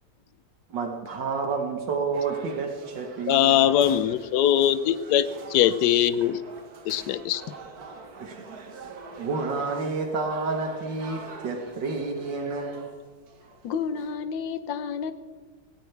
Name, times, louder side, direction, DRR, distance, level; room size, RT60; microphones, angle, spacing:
voice 1, 0.7-3.7 8.2-8.4 9.2-12.9, right 4 dB, 75° right, 3 dB, 1.9 m, -30 dB
sound 1, 2.1-14.2, right 3 dB, 55° right, 1.8 m, -44 dB
voice 2, 3.3-6.4 6.9-7.4, left 11 dB, 70° left, 14 dB, 1.1 m, -21 dB
voice 3, 13.6-15.1, left 6 dB, 90° left, 10 dB, 1.6 m, -30 dB
17.5 x 17.0 x 3.3 m, 1.4 s
omnidirectional pair, 2.0 m